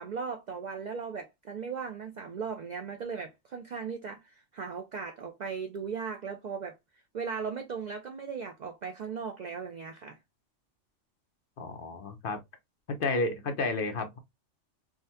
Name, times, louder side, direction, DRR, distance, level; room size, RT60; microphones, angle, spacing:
voice 1, 0.0-6.8 7.1-10.2, right 6 dB, 65° right, 0.4 m, -37 dB
voice 2, 11.6-12.4 12.9-14.2, left 3 dB, 55° left, 0.8 m, -31 dB
3.6 x 2.1 x 2.7 m
omnidirectional pair, 1.3 m